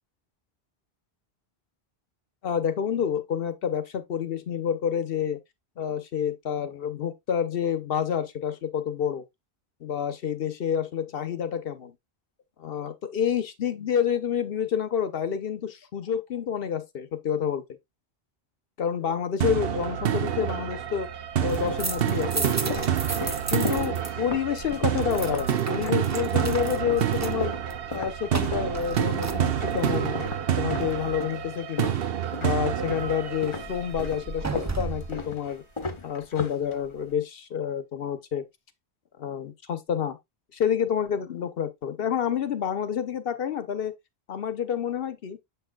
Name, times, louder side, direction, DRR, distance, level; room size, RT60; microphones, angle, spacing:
voice 1, 2.4-5.4 5.8-9.2 9.8-11.9 12.6-17.6 18.8-21.1 21.4-22.9 23.5-27.5 27.9-30.2 30.6-31.9 32.4-35.6 36.0-38.4 39.2-40.2 40.5-43.9 44.3-45.4, left 8 dB, 65° left, 1.0 m, -28 dB
sound 1, 19.4-34.4, right 9 dB, 65° right, 0.9 m, -28 dB
sound 2, 20.1-20.8 21.5-26.6 26.9-33.1 33.4-37.1, left 3 dB, 30° left, 0.8 m, -36 dB
sound 3, 21.5-24.1 24.4-30.0 33.0-35.2, right 3 dB, 25° right, 0.3 m, -35 dB
7.4 x 5.7 x 2.3 m
omnidirectional pair, 1.1 m